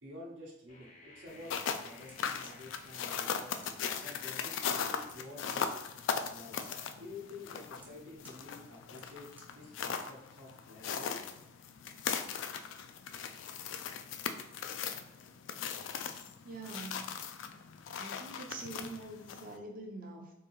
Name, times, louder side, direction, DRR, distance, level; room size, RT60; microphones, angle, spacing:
voice 1, 0.0-3.5 4.0-5.7 6.3-6.7 7.0-11.4, left 2 dB, 75° right, -4 dB, 0.9 m, -50 dB
sound 1, 0.7-12.5, left 2 dB, 40° left, 0.6 m, -62 dB
sound 2, 1.3-19.6, left 7 dB, 85° left, 0.3 m, -39 dB
sound 3, 1.9-9.7, right 1 dB, 10° right, 0.5 m, -61 dB
voice 2, 16.4-17.2 18.0-20.3, right 2 dB, 50° right, 1 dB, 0.6 m, -45 dB
3.7 x 2.7 x 3.0 m, 0.83 s
head